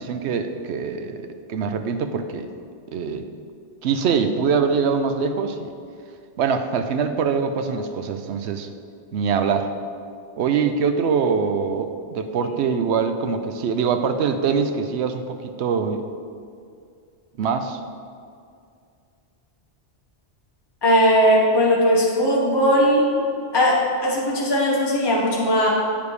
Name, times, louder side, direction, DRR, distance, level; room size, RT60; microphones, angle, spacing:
voice 1, 0.0-2.5 2.9-3.2 3.8-5.7 6.4-8.7 9.1-9.7 10.4-16.0 17.4-17.8, right 6 dB, 75° right, 8 dB, 0.9 m, -23 dB
voice 2, 20.8-23.1 23.5-25.7, equal, 20° left, -4 dB, 1.1 m, -18 dB
8.8 x 5.1 x 4.8 m, 2.3 s
omnidirectional pair, 1.2 m